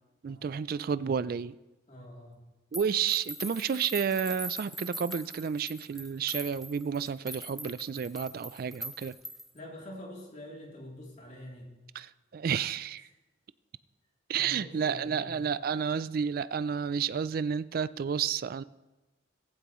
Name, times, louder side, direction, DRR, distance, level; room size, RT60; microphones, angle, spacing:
voice 1, 0.2-1.6 2.7-9.2 11.9-13.1 14.3-18.6, right 7 dB, 50° right, 0.3 m, -31 dB
voice 2, 1.9-2.4 9.5-11.7 14.3-15.3, left 1 dB, 40° left, 3.1 m, -46 dB
sound 1, 2.7-9.6, right 1 dB, ahead, 0.6 m, -42 dB
16.5 x 15.0 x 3.1 m
head